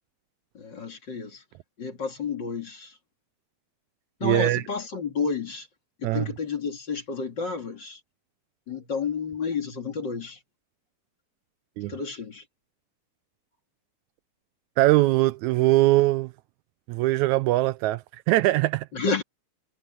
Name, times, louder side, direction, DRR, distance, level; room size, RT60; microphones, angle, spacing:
voice 1, 0.5-1.4 1.8-3.0 4.2-5.7 6.0-8.0 8.7-10.4 11.8-12.4 18.9-19.2, left 5 dB, 35° left, 2.8 m, -31 dB
voice 2, 4.2-4.6 6.0-6.3 11.8-11.9 14.8-16.3 16.9-18.9, right 17 dB, 80° right, 1.8 m, -21 dB
omnidirectional pair, 3.5 m